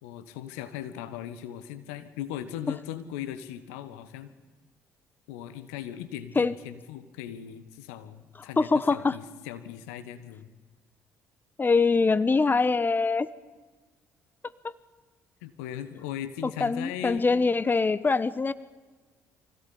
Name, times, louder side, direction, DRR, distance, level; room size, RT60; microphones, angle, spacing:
voice 1, 0.0-4.3 5.3-10.5 15.4-17.3, left 11 dB, 80° left, 12 dB, 1.6 m, -38 dB
voice 2, 8.6-9.2 11.6-13.3 14.6-14.7 16.6-18.5, left 4 dB, 25° left, 17 dB, 1.1 m, -23 dB
25.0 x 17.0 x 8.9 m, 1.4 s
hypercardioid pair, 50°, 8 cm